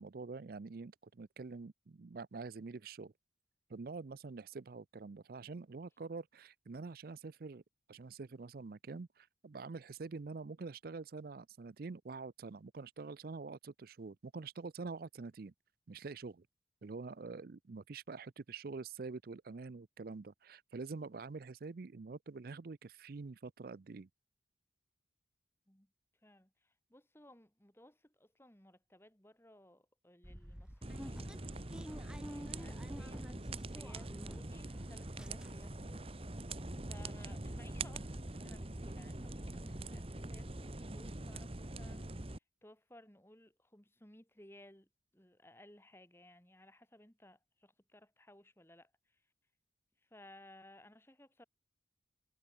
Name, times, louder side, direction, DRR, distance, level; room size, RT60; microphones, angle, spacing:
voice 1, 0.0-3.1 3.7-7.6 7.9-15.5 15.9-16.5 16.8-24.1, right 4 dB, 50° right, 0.5 m, -46 dB
voice 2, 26.2-44.9 45.1-49.2 50.0-51.4, left 1 dB, 10° left, 2.6 m, -60 dB
sound 1, 30.2-34.7 35.0-35.8 36.2-36.3 36.5-36.7, equal, 5° right, 1.3 m, -50 dB
sound 2, 30.8-42.4, right 2 dB, 30° right, 1.3 m, -44 dB
head